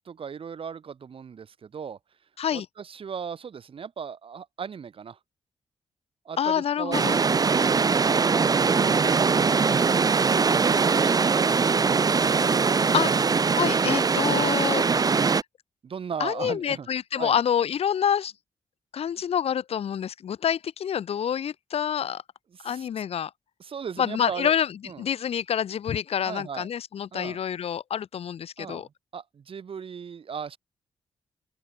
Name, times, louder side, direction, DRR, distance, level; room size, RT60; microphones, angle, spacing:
voice 1, 0.0-2.0 2.5-5.2 6.2-10.1 10.5-11.1 11.4-12.5 13.0-13.2 14.8-15.1 15.8-16.9 17.2-17.4 22.5-23.1 23.6-24.5 24.9-25.0 26.2-26.7 27.1-27.4 28.6-30.6, right 6 dB, 60° right, 7.4 m, -38 dB
voice 2, 6.4-7.2 12.9-13.1 13.6-15.1 16.2-18.3 18.9-22.2 22.6-23.3 24.0-24.7 25.0-28.9, left 8 dB, 70° left, 1.8 m, -27 dB
sound 1, 6.9-15.4, right 5 dB, 35° right, 0.9 m, -22 dB
open air
cardioid pair, 85°, 11 cm